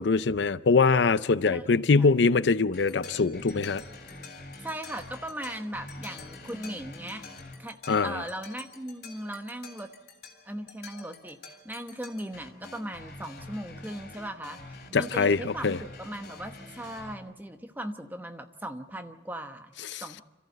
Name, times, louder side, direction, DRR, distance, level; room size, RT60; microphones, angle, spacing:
voice 1, 0.0-3.8 7.9-8.2 14.9-15.8 19.9-20.0, left 4 dB, 80° left, 0.6 m, -23 dB
voice 2, 1.4-2.2 4.6-7.2 7.6-9.9 10.4-19.7 20.0-20.2, right 1 dB, 10° right, 1.0 m, -38 dB
sound 1, 2.7-17.1, left 3 dB, 60° left, 3.4 m, -46 dB
26.5 x 14.5 x 8.0 m
head